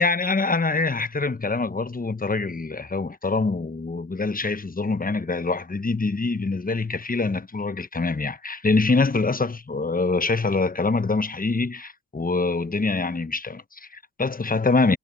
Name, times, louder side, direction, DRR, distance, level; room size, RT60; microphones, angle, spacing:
voice 1, 0.0-15.0, left 3 dB, 20° left, 1.1 m, -24 dB
cardioid pair, 60°, 42 cm